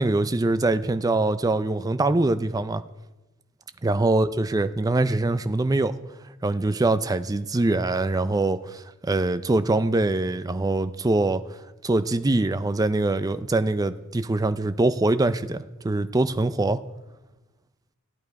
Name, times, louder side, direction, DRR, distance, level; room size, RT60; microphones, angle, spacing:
voice 1, 0.0-2.8 3.8-5.9 6.4-11.4 11.8-16.8, right 2 dB, 15° right, 12 dB, 0.4 m, -23 dB
15.5 x 9.1 x 4.7 m, 1.1 s
head